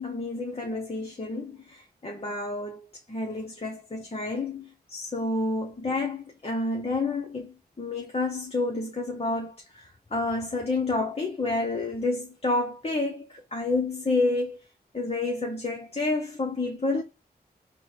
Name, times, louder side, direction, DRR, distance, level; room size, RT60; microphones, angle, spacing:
voice 1, 0.0-9.8 10.1-14.6 14.9-17.0, left 2 dB, 35° left, 0.8 m, -29 dB
3.9 x 2.2 x 4.5 m
cardioid pair, 55°, 17 cm